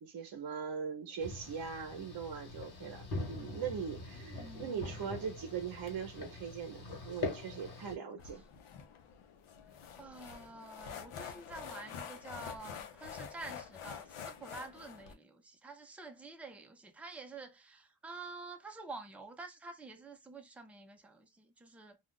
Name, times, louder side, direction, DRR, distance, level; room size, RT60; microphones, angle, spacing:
voice 1, 0.0-8.4, right 7 dB, 45° right, 0.7 m, -41 dB
sound 1, 1.2-8.0, left 3 dB, 50° left, 1.4 m, -43 dB
voice 2, 4.4-5.0 10.0-22.0, right 3 dB, 5° right, 0.5 m, -49 dB
sound 2, 8.2-15.1, left 7 dB, 80° left, 0.8 m, -47 dB
2.4 x 2.4 x 3.5 m
cardioid pair, 110°, 49 cm